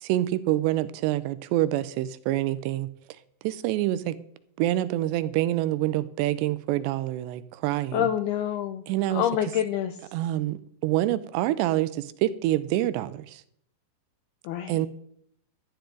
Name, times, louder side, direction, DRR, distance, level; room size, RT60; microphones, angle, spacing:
voice 1, 0.0-2.9 3.4-4.2 4.6-8.1 8.9-9.2 10.1-13.4 14.7-14.9, right 14 dB, 85° right, 15 dB, 2.6 m, -26 dB
voice 2, 7.9-8.8 9.1-10.0 14.4-14.9, left 11 dB, 90° left, 9 dB, 2.2 m, -27 dB
12.5 x 11.5 x 3.8 m, 0.66 s
omnidirectional pair, 5.3 m